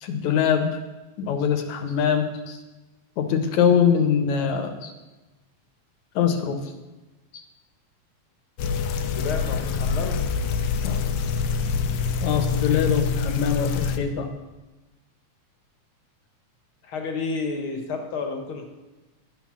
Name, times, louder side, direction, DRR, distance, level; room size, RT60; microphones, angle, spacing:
voice 1, 0.0-0.8 1.2-2.6 3.2-4.9 6.2-6.6 12.2-14.3, left 7 dB, 75° left, 7 dB, 2.4 m, -23 dB
sound 1, 8.6-14.0, left 6 dB, 90° left, 2.2 m, -25 dB
voice 2, 9.0-10.3 12.2-12.6 16.8-18.6, left 4 dB, 50° left, 4 dB, 1.8 m, -31 dB
12.0 x 8.4 x 6.2 m, 1.1 s
omnidirectional pair, 3.4 m